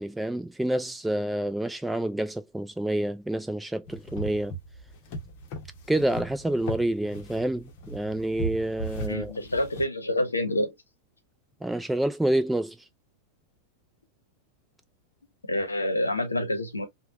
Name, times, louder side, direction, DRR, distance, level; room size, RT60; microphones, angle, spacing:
voice 1, 0.0-4.6 5.9-9.3 11.6-12.8, right 1 dB, 5° right, 0.4 m, -28 dB
sound 1, 3.8-9.8, right 1 dB, 45° left, 0.9 m, -37 dB
voice 2, 9.1-10.8 15.5-16.9, left 1 dB, 80° left, 0.8 m, -27 dB
3.2 x 2.2 x 2.3 m
figure-of-eight pair, 90°, 0 cm